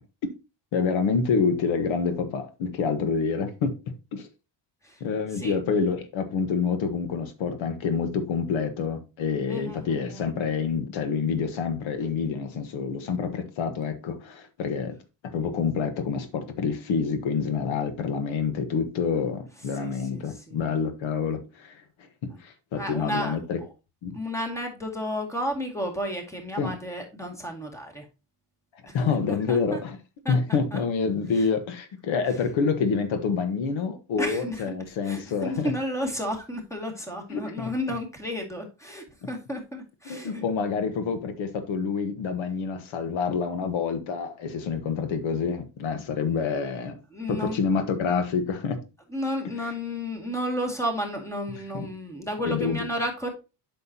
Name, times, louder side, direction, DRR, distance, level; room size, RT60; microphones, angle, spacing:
voice 1, 0.7-3.8 4.1-4.3 5.0-15.0 15.3-22.1 22.4-23.6 24.0-24.2 26.6-26.7 28.9-30.0 30.3-35.7 37.3-37.7 40.0-47.0 47.3-48.8 49.6-49.7 51.7-51.9 52.4-52.9, left 5 dB, 85° left, 1.4 m, -27 dB
voice 2, 9.5-10.2 19.8-20.6 22.8-23.4 24.1-28.0 28.9-29.0 29.3-29.8 30.2-30.4 30.7-30.8 34.2-34.6 35.1-40.4 47.1-47.6 49.1-53.3, equal, 5° left, 2.1 m, -32 dB
8.3 x 6.2 x 2.8 m
cardioid pair, 135°, 46 cm